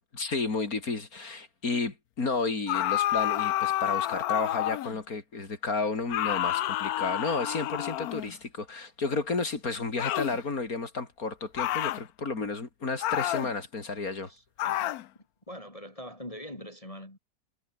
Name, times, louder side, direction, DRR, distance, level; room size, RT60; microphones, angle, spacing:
voice 1, 0.1-14.3, left 3 dB, 50° left, 3.8 m, -32 dB
sound 1, 2.7-5.0 6.1-8.4 10.0-10.4 11.6-12.0 13.0-13.5 14.6-15.0, left 14 dB, 65° left, 1.0 m, -29 dB
voice 2, 14.2-15.0 15.5-17.2, equal, 15° left, 4.4 m, -43 dB
omnidirectional pair, 2.0 m